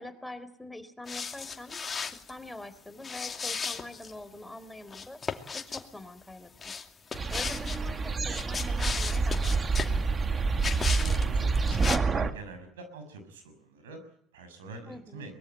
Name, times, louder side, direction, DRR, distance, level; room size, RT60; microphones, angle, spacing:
voice 1, 0.0-1.8 2.1-5.2 5.5-6.7 7.3-10.1 14.9-15.2, left 2 dB, 10° left, 10 dB, 3.9 m, -44 dB
sound 1, 1.1-2.3 3.0-4.1 4.9-5.8 6.6-7.8 8.2-10.0 10.6-11.2 11.5-12.0, left 5 dB, 30° left, 2.6 m, -35 dB
sound 2, 7.1-12.3, right 4 dB, 30° right, 1.8 m, -27 dB
voice 2, 10.8-11.9 12.1-15.3, right 3 dB, 85° right, 8 dB, 6.3 m, -45 dB
23.5 x 21.5 x 9.2 m, 0.68 s
hypercardioid pair, 70°, 0 cm